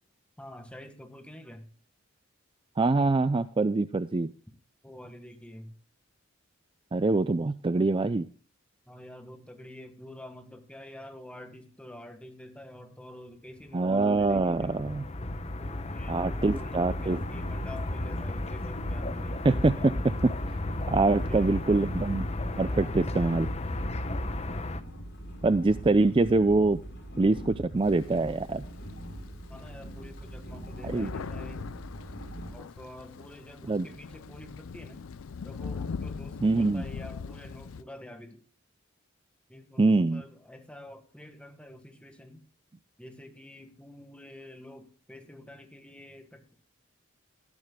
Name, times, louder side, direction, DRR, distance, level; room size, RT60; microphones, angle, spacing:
voice 1, 0.4-1.7 4.8-5.7 8.9-15.0 15.6-19.4 20.9-22.1 22.4-23.0 29.5-31.7 32.5-35.1 35.4-38.4 39.5-42.4 43.0-46.5, left 1 dB, 5° left, 6 dB, 1.6 m, -47 dB
voice 2, 2.8-4.3 6.9-8.3 13.7-15.0 16.1-17.2 19.4-20.6 20.9-22.3 22.6-23.5 25.4-26.8 27.2-28.6 30.8-31.1 33.7-33.9 36.4-36.8 39.8-40.2, right 3 dB, 25° right, 13 dB, 0.4 m, -24 dB
sound 1, 13.9-24.8, left 1 dB, 30° left, 0.9 m, -34 dB
sound 2, 17.0-32.6, equal, 55° left, 6.2 m, -42 dB
Thunder, 27.8-29.1 29.7-29.8 30.0-37.8, left 5 dB, 80° left, 0.5 m, -40 dB
18.0 x 12.5 x 2.2 m, 0.43 s
head